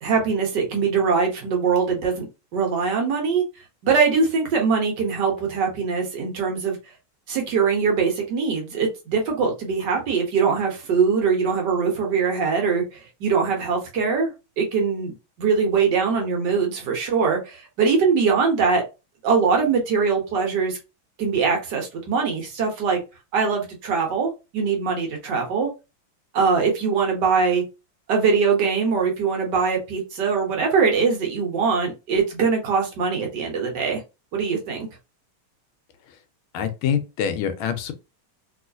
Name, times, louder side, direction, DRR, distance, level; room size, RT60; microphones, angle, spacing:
voice 1, 0.0-2.2 2.5-3.4 3.8-6.8 7.3-18.8 19.2-20.8 21.2-23.0 23.3-25.7 26.3-27.6 28.1-34.0 34.3-34.9, right 5 dB, 60° right, 1.3 m, -22 dB
voice 2, 36.5-37.9, left 8 dB, 85° left, 1.4 m, -25 dB
3.0 x 3.0 x 2.5 m
omnidirectional pair, 2.3 m